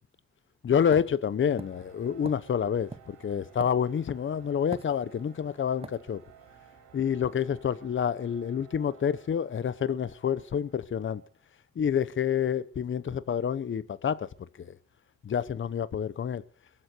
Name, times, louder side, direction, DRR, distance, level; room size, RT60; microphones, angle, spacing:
voice 1, 0.6-6.2 6.9-11.2 11.8-14.3 14.6-14.8 15.2-16.4, left 8 dB, 40° left, 1.0 m, -28 dB
sound 1, 0.9-4.2 4.7-5.4 5.8-6.0, right 4 dB, 20° right, 0.8 m, -44 dB
sound 2, 1.4-11.4, right 8 dB, 75° right, 4.3 m, -56 dB
21.5 x 7.7 x 7.7 m
cardioid pair, 90°, 30 cm